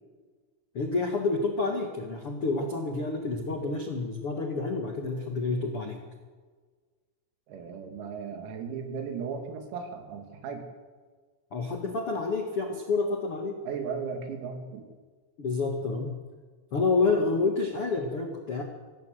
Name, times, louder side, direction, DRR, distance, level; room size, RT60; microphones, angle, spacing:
voice 1, 0.7-6.0 11.5-13.6 15.4-16.2 16.7-18.6, left 3 dB, 85° left, 2 dB, 1.2 m, -28 dB
voice 2, 7.5-10.7 13.7-14.8, right 5 dB, 90° right, 5 dB, 5.4 m, -36 dB
25.0 x 17.0 x 7.8 m, 1.5 s
omnidirectional pair, 6.0 m